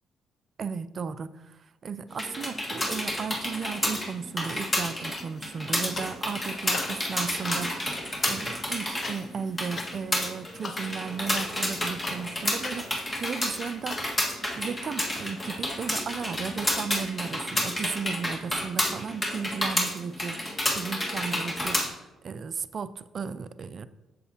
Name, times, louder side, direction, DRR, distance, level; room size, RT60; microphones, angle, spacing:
voice 1, 0.6-7.9 8.3-12.9 13.2-14.0 14.6-20.4 20.7-21.8 22.2-23.9, right 6 dB, 50° right, 14 dB, 0.4 m, -35 dB
sound 1, 2.1-21.9, left 1 dB, 25° left, 1.7 m, -30 dB
sound 2, 5.1-6.3 6.6-14.1, left 4 dB, 45° left, 0.7 m, -42 dB
8.1 x 6.8 x 2.8 m, 1.1 s
supercardioid pair, 60°, 0 cm